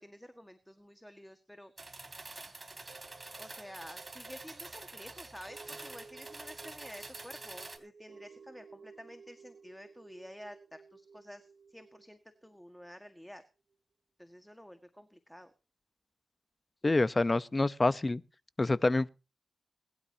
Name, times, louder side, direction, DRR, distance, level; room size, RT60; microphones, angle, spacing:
voice 1, 0.0-2.0 3.4-13.4 14.2-15.5, equal, 5° left, 1.8 m, -51 dB
sound 1, 1.8-7.8, right 2 dB, 30° right, 3.3 m, -47 dB
sound 2, 2.9-13.2 13.7-13.8, right 4 dB, 85° right, 2.6 m, -56 dB
voice 2, 16.8-18.2 18.6-19.1, left 2 dB, 30° left, 0.9 m, -27 dB
21.5 x 12.0 x 2.9 m
cardioid pair, 65°, 0 cm